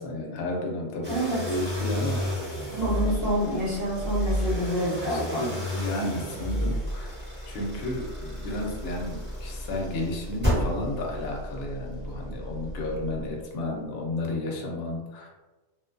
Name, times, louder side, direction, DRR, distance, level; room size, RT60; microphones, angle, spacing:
voice 1, 0.0-1.2 1.5-2.7 5.1-7.1 7.4-15.3, left 1 dB, 60° left, 0 dB, 0.8 m, -32 dB
sound 1, 1.0-13.4, equal, 10° right, 0.9 m, -32 dB
voice 2, 1.1-1.4 2.7-5.4, equal, 55° right, -11 dB, 1.0 m, -27 dB
2.5 x 2.2 x 2.5 m, 1.2 s
omnidirectional pair, 1.3 m